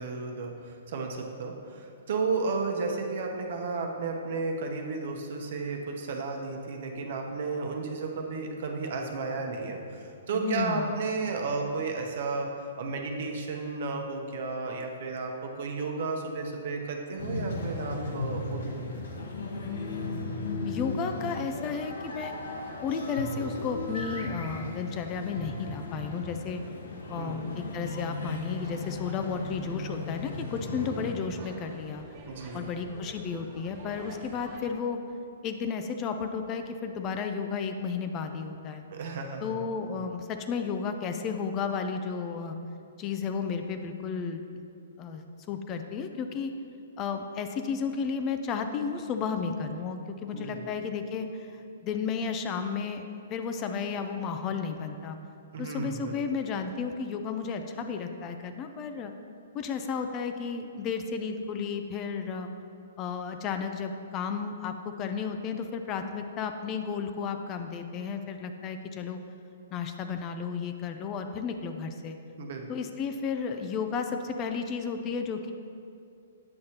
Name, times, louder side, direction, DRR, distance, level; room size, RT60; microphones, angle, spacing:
voice 1, 0.0-18.9 19.1-19.2 27.1-27.5 32.3-32.7 38.9-39.7 39.9-40.1 50.3-50.7 55.5-56.2 72.4-72.7, right 4 dB, 60° right, 2 dB, 0.9 m, -33 dB
voice 2, 10.3-11.0 19.6-20.0 20.7-22.4 22.8-26.6 27.1-32.1 32.5-35.0 35.4-38.8 39.4-42.6 43.0-44.7 45.0-46.5 47.0-55.2 55.6-59.1 59.5-62.5 63.0-69.2 69.7-72.2 72.7-75.5, left 6 dB, 25° left, 7 dB, 0.4 m, -33 dB
sound 1, 17.2-31.1, left 2 dB, 75° left, 1.0 m, -36 dB
sound 2, 28.2-34.6, right 1 dB, 30° right, 1.2 m, -48 dB
8.6 x 6.4 x 2.9 m, 2.5 s
hypercardioid pair, 145°, 0 cm